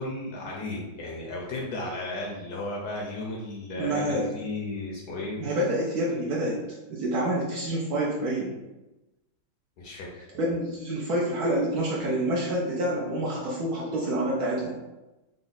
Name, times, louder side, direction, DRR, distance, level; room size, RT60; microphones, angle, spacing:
voice 1, 0.0-5.4 9.8-10.3, left 2 dB, 65° left, -2 dB, 1.0 m, -34 dB
voice 2, 3.8-4.3 5.4-6.6 6.9-8.5 10.3-14.8, right 1 dB, 65° right, -4 dB, 1.0 m, -27 dB
3.9 x 2.1 x 4.0 m, 1.0 s
omnidirectional pair, 2.2 m